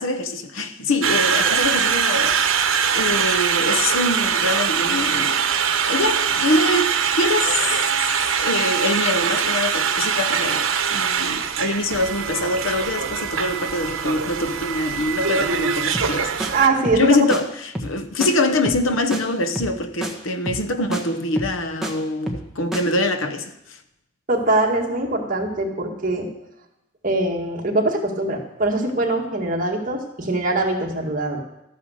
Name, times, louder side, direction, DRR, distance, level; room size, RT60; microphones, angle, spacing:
voice 1, 0.0-2.4 2.9-5.4 5.9-7.8 8.0-16.5 16.9-23.8, left 2 dB, 80° left, 1.1 m, -24 dB
Conversation, 1.0-16.7, right 7 dB, 80° right, 1.0 m, -22 dB
sound 1, 15.9-16.1 16.4-16.5 16.8-17.0 17.3-17.4 17.7-18.0 18.2-18.3 18.6-18.9 19.1-19.2 19.6-19.8 20.0-20.1 20.5-20.7 20.9-21.0 21.4-21.9 22.3-22.5 22.7-22.8, right 1 dB, ahead, 1.3 m, -28 dB
voice 2, 16.5-17.3 24.3-26.3 27.0-31.4, right 2 dB, 40° right, 2.0 m, -22 dB
13.0 x 9.5 x 6.5 m
head